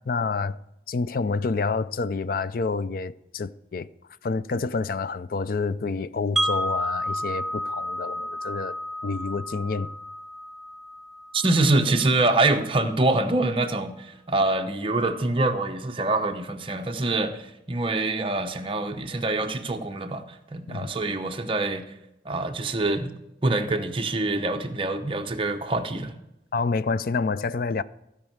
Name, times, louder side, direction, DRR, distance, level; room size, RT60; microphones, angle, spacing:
voice 1, 0.1-0.6 0.9-3.9 4.2-8.8 9.0-9.9 20.7-20.9 26.5-27.8, left 4 dB, 50° left, 0.4 m, -28 dB
Wind chime, 6.4-12.3, equal, ahead, 0.7 m, -31 dB
voice 2, 11.3-17.4 17.7-20.2 20.5-21.8 22.2-23.1 23.4-26.1, right 2 dB, 30° right, 0.9 m, -25 dB
15.5 x 5.4 x 7.2 m
head